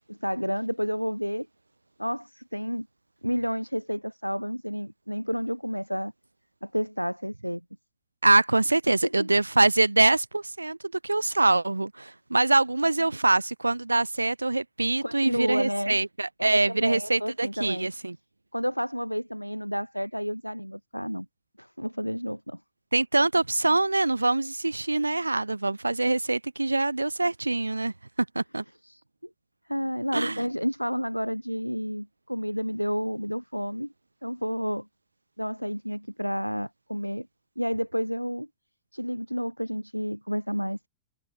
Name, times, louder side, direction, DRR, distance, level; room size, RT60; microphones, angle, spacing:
voice 1, 0.1-1.5 2.0-2.9 3.2-6.1 6.6-7.6 8.9-9.3 15.0-16.0 16.4-17.9 18.5-21.3 21.6-22.6 28.8-29.0 29.7-33.9 34.2-34.9 35.4-37.3 37.6-38.5 38.9-40.9, equal, 90° left, 0.5 m, -30 dB
voice 2, 8.2-10.8 11.0-18.2 22.9-27.9 28.4-28.6 30.1-30.4, right 2 dB, 85° right, 0.3 m, -24 dB
figure-of-eight pair, 90°, 0 cm